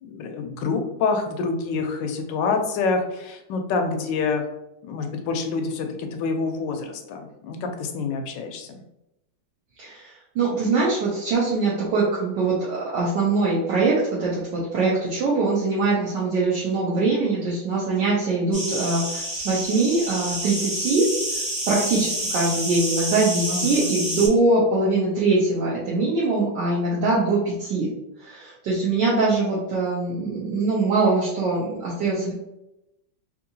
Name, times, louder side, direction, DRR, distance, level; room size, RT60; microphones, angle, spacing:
voice 1, 0.0-4.5 4.8-8.8 23.5-24.0, left 4 dB, 75° left, 4 dB, 1.1 m, -27 dB
voice 2, 9.8-21.1 21.7-27.9 28.2-32.3, right 3 dB, 65° right, -6 dB, 1.3 m, -23 dB
sound 1, 18.5-24.3, right 1 dB, 25° right, 1.1 m, -28 dB
3.6 x 2.9 x 2.6 m, 0.90 s
omnidirectional pair, 2.3 m